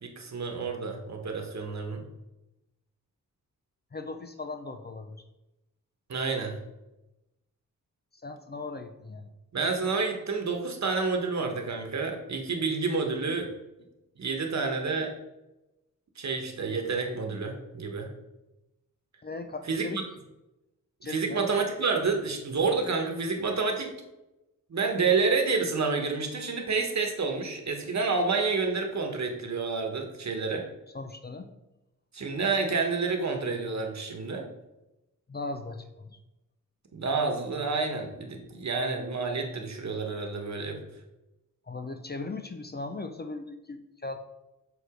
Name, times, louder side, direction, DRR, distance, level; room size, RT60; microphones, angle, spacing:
voice 1, 0.0-2.0 6.1-6.6 9.5-13.5 14.2-15.1 16.2-18.1 19.7-20.0 21.0-23.9 24.7-30.6 32.1-34.4 36.9-40.8, right 4 dB, 55° right, 3 dB, 1.2 m, -29 dB
voice 2, 3.9-5.2 8.1-9.3 19.2-20.0 21.0-21.4 30.9-31.5 35.3-36.2 41.7-44.3, left 3 dB, 30° left, 7 dB, 0.4 m, -38 dB
6.3 x 4.7 x 4.9 m, 0.98 s
wide cardioid pair, 140°, 33 cm